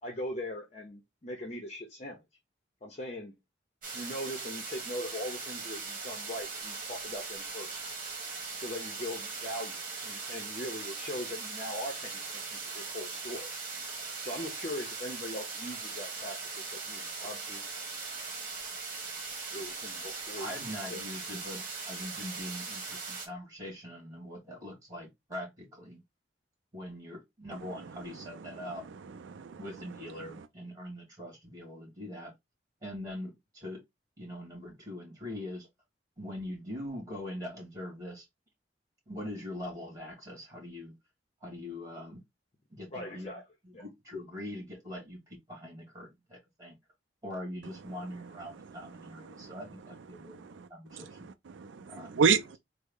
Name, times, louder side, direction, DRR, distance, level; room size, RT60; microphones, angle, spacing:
voice 1, 0.0-2.2 2.8-3.3 3.9-7.8 8.5-13.5 14.2-17.6 19.5-21.2 42.9-43.4 43.7-43.8, left 1 dB, 35° left, 0.7 m, -40 dB
sound 1, 3.8-23.3, right 4 dB, 50° right, 1.2 m, -40 dB
voice 2, 20.4-26.0 26.7-28.8 29.6-32.3 32.8-33.8 34.2-35.7 36.2-38.2 39.1-40.9 41.4-42.2 42.7-43.3 43.6-46.8 47.2-51.3 51.9-52.1, left 1 dB, 20° right, 2.2 m, -42 dB
voice 3, 27.5-29.9 30.2-30.5 47.9-48.1 48.5-49.6 50.1-52.6, right 6 dB, 90° right, 0.4 m, -34 dB
3.7 x 2.1 x 3.5 m
head